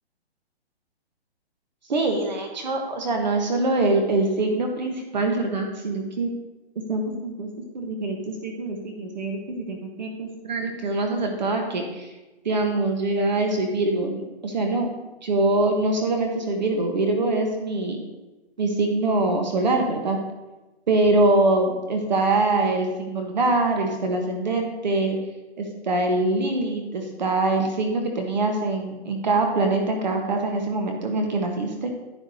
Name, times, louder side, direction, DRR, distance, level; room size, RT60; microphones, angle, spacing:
voice 1, 1.9-6.3 6.9-7.5 7.7-12.1 12.4-14.9 15.2-18.0 18.6-20.2 20.9-25.2 25.6-31.9, right 2 dB, 45° right, 3 dB, 1.2 m, -24 dB
10.5 x 9.7 x 2.8 m, 1.1 s
hypercardioid pair, 170°, 32 cm